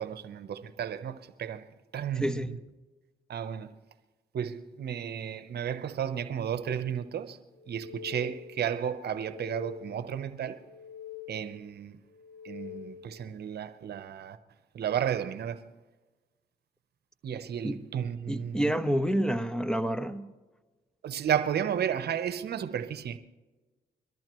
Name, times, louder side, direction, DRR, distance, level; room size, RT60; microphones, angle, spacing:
voice 1, 0.0-1.7 1.9-2.6 3.3-3.8 4.3-7.4 7.7-10.6 11.3-12.0 12.4-14.4 14.7-15.6 17.2-18.7 21.0-23.2, right 8 dB, 65° right, 0.9 m, -33 dB
voice 2, 2.2-2.5 17.6-17.8 18.3-20.3, equal, 5° left, 1.1 m, -28 dB
sound 1, 7.5-8.7 9.0-10.2 10.5-11.7 12.1-13.2, left 10 dB, 25° left, 1.1 m, -46 dB
23.0 x 13.5 x 3.1 m
supercardioid pair, 60°, 18 cm